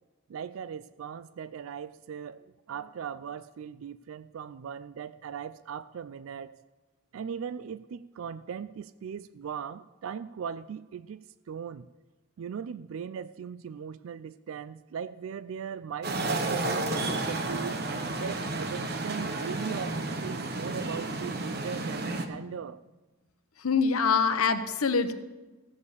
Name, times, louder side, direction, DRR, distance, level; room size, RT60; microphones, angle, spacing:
voice 1, 0.3-6.6 7.1-11.2 11.5-11.9 12.4-17.8 18.2-22.8, right 7 dB, 75° right, 16 dB, 0.3 m, -39 dB
sound 1, 16.0-22.3, right 2 dB, 45° right, 1.0 m, -31 dB
voice 2, 23.6-25.1, left 5 dB, 90° left, 10 dB, 0.9 m, -25 dB
15.5 x 6.6 x 6.9 m, 1.2 s
head